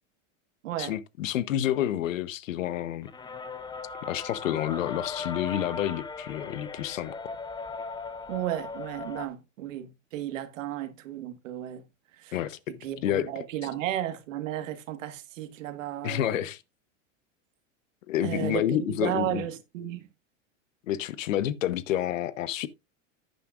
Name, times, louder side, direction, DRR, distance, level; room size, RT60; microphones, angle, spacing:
voice 1, 0.8-3.1 4.0-7.2 12.3-12.6 13.0-13.4 16.0-16.6 18.1-19.4 20.9-22.7, left 12 dB, 90° left, 0.9 m, -29 dB
sound 1, 3.0-9.3, left 4 dB, 10° left, 0.7 m, -38 dB
voice 2, 8.3-11.8 12.2-12.4 12.7-16.3 18.2-20.1, right 12 dB, 80° right, 1.6 m, -34 dB
11.0 x 9.2 x 2.4 m
supercardioid pair, 120°, 38 cm